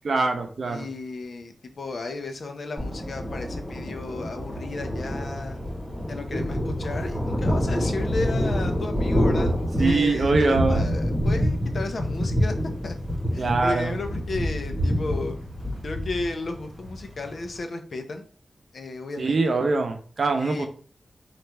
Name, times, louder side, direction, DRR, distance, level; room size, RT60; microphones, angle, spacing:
voice 1, 0.0-0.8 9.8-10.8 13.4-13.9 19.2-20.7, right 3 dB, 60° right, 5 dB, 0.7 m, -23 dB
voice 2, 0.7-5.6 6.1-9.5 9.8-12.5 12.8-12.9 13.3-15.4 15.8-18.2 18.7-19.5 20.3-20.7, left 3 dB, 65° left, 5 dB, 0.6 m, -34 dB
Thunder, 2.8-17.6, equal, 10° left, 1.4 m, -27 dB
3.2 x 2.5 x 4.4 m, 0.43 s
wide cardioid pair, 110°, 0 cm